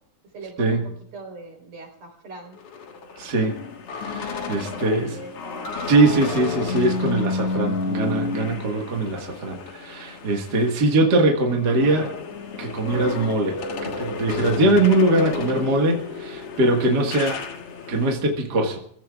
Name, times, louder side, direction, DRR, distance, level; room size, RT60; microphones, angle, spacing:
voice 1, 0.2-2.6 4.8-5.7, right 2 dB, 55° right, 0 dB, 5.5 m, -41 dB
sound 1, 2.5-10.9 11.3-18.1, left 4 dB, 55° left, 2.2 m, -31 dB
voice 2, 3.1-3.6 4.0-5.2 5.9-12.1 12.6-17.4 17.9-18.8, right 2 dB, 40° right, 2 dB, 1.7 m, -21 dB
29.0 x 16.0 x 2.4 m, 0.65 s
omnidirectional pair, 3.7 m